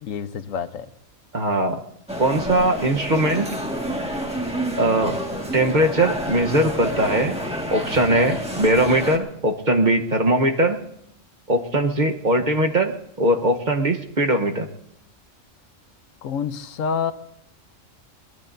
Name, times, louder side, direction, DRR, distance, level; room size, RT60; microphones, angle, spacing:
voice 1, 0.0-0.9 16.2-17.1, left 6 dB, 80° left, 11 dB, 1.2 m, -27 dB
voice 2, 1.3-1.8 2.2-3.5 4.8-5.2 5.5-7.4 7.7-10.8 11.5-12.9 13.2-14.7, right 1 dB, 40° right, 4 dB, 1.1 m, -20 dB
sound 1, 2.1-9.2, equal, 5° right, 1.7 m, -29 dB
22.0 x 22.0 x 2.6 m, 0.76 s
omnidirectional pair, 1.4 m